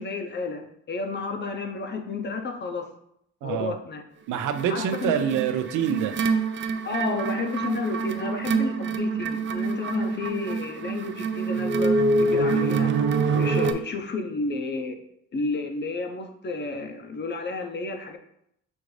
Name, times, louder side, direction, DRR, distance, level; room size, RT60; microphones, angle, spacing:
voice 1, 0.0-2.9 3.4-4.0 4.7-5.1 6.8-12.9 13.3-15.0 15.3-18.2, left 3 dB, 35° left, 5 dB, 0.7 m, -31 dB
voice 2, 3.4-3.7 4.3-6.1 13.6-13.7, right 8 dB, 90° right, 8 dB, 0.5 m, -26 dB
sound 1, 4.5-13.7, right 4 dB, 40° right, 0.4 m, -26 dB
6.2 x 2.5 x 3.2 m, 0.76 s
cardioid pair, 90°, 30 cm